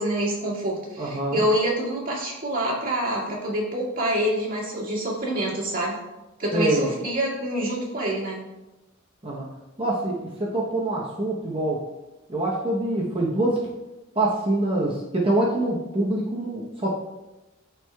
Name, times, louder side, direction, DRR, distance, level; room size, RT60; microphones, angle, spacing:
voice 1, 0.0-6.0 6.4-8.4, right 1 dB, 45° right, -5 dB, 2.1 m, -26 dB
voice 2, 1.0-1.4 6.5-6.9 9.2-9.5 9.8-11.8 12.3-13.6 14.1-16.9, right 1 dB, 25° right, -3 dB, 0.9 m, -25 dB
13.0 x 4.6 x 2.3 m, 1.0 s
head